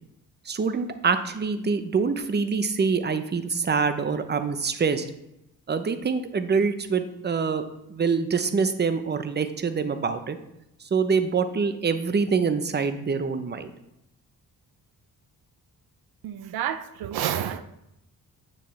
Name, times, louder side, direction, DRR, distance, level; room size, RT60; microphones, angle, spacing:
voice 1, 0.5-5.1 5.7-7.6 7.9-10.4 10.9-13.7, right 5 dB, 30° right, 0.8 m, -25 dB
voice 2, 16.2-17.6, right 10 dB, 80° right, 0.6 m, -29 dB
9.3 x 6.7 x 3.3 m
cardioid pair, 80°, 37 cm